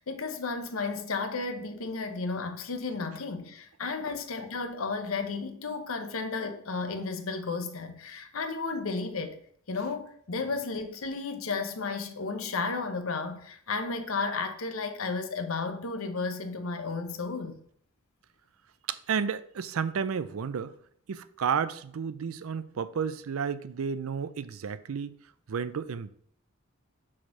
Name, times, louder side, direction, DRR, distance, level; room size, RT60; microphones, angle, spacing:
voice 1, 0.0-9.4 9.7-17.6, left 4 dB, 85° left, 0.9 m, -33 dB
voice 2, 18.9-20.7 21.1-25.1 25.5-26.1, right 6 dB, 85° right, 0.5 m, -32 dB
5.0 x 4.3 x 5.8 m
head